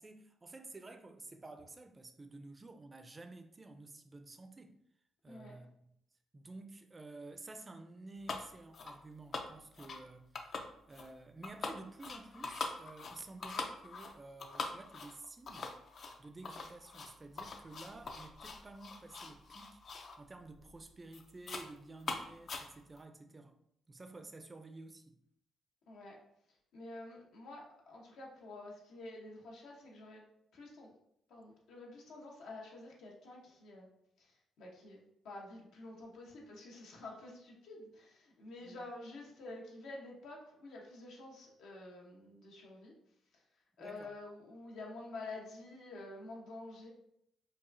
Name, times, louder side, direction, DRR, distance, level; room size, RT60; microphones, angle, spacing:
voice 1, 0.0-4.8 5.2-5.9 6.3-15.7 16.2-23.6 23.9-25.2 38.6-38.9 43.8-44.1, right 2 dB, 25° right, 0.4 m, -52 dB
voice 2, 5.3-5.6 25.9-26.2 26.7-30.2 30.5-30.9 31.3-33.9 34.2-42.9 43.3-43.4 43.8-46.9, left 2 dB, 80° left, 1.0 m, -49 dB
sound 1, 8.3-8.5 8.7-9.0 9.3-10.0 10.3-11.1 11.4-20.2 20.6-20.8 21.1-21.7 22.0-23.0, left 4 dB, 50° left, 0.4 m, -43 dB
4.8 x 2.4 x 2.6 m
cardioid pair, 90°, 0 cm